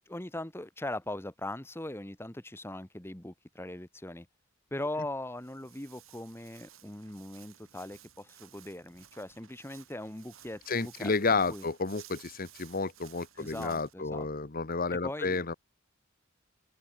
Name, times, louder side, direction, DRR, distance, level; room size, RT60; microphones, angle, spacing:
voice 1, 0.1-4.3 4.7-11.6 13.4-14.3 14.9-15.4, left 1 dB, 10° left, 1.4 m, -40 dB
Walk footsteps, 5.2-13.9, right 11 dB, 90° right, 6.3 m, -56 dB
voice 2, 10.7-15.5, left 4 dB, 45° left, 1.1 m, -31 dB
open air
head